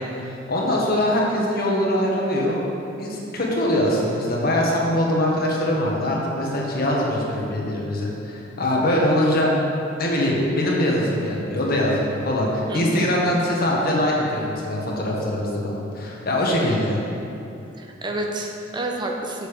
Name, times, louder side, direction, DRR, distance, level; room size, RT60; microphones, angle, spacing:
voice 1, 0.2-2.6 3.0-9.5 10.0-17.0, left 1 dB, 55° left, -3 dB, 1.4 m, -22 dB
voice 2, 12.7-13.1 17.8-19.5, right 1 dB, 25° right, 1 dB, 0.6 m, -29 dB
6.7 x 6.6 x 5.0 m, 2.8 s
head